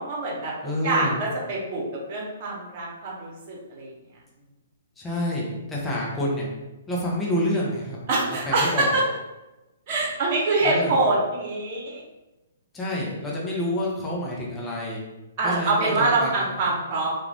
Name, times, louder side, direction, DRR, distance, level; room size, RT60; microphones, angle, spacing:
voice 1, 0.0-0.5 0.8-1.8 2.1-3.9 8.1-9.0 9.9-12.0 15.4-17.1, right 2 dB, 40° right, -3 dB, 1.1 m, -24 dB
voice 2, 0.6-1.2 5.0-6.5 6.9-8.0 8.4-8.9 10.6-11.0 12.7-15.0 15.4-16.5, left 1 dB, 10° left, -5 dB, 0.8 m, -28 dB
2.4 x 2.3 x 3.4 m, 1.0 s
hypercardioid pair, 130°, 0 cm